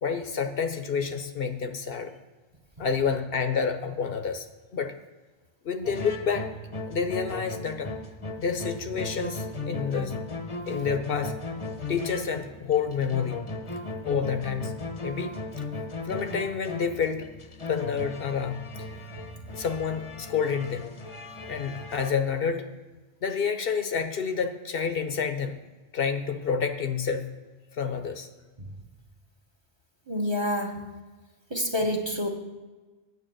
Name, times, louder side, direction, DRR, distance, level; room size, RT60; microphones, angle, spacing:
voice 1, 0.0-2.1 2.8-4.5 4.7-4.9 5.6-6.5 6.9-7.9 8.4-10.2 10.7-11.4 11.9-13.4 14.0-14.7 15.0-15.6 16.0-17.3 17.6-18.6 19.5-20.9 21.5-22.7 23.2-25.5 25.9-27.3 27.7-28.3, left 6 dB, 60° left, 8 dB, 0.9 m, -29 dB
sound 1, 5.8-22.1, left 2 dB, 30° left, 0.8 m, -37 dB
voice 2, 30.1-30.8 31.5-32.3, left 1 dB, 25° right, 3 dB, 1.0 m, -28 dB
9.3 x 5.8 x 7.6 m, 1.3 s
omnidirectional pair, 1.1 m